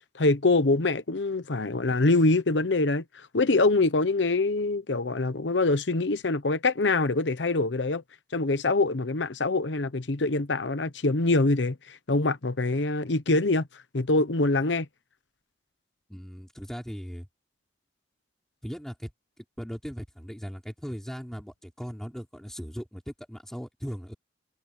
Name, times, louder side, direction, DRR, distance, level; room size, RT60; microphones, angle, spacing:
voice 1, 0.1-8.0 8.3-13.7 13.9-14.9, left 2 dB, 75° left, 1.0 m, -24 dB
voice 2, 16.1-17.3 18.6-19.1 19.4-24.1, equal, 5° left, 5.1 m, -38 dB
head